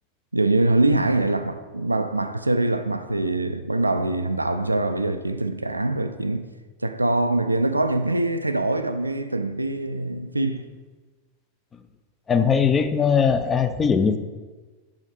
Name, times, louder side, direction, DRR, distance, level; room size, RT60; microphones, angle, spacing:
voice 1, 0.3-6.5 6.8-10.7, right 2 dB, 85° right, 0.3 m, -23 dB
voice 2, 12.3-14.2, left 6 dB, 20° left, 0.4 m, -20 dB
6.3 x 4.9 x 4.3 m
figure-of-eight pair, 90°, 0 cm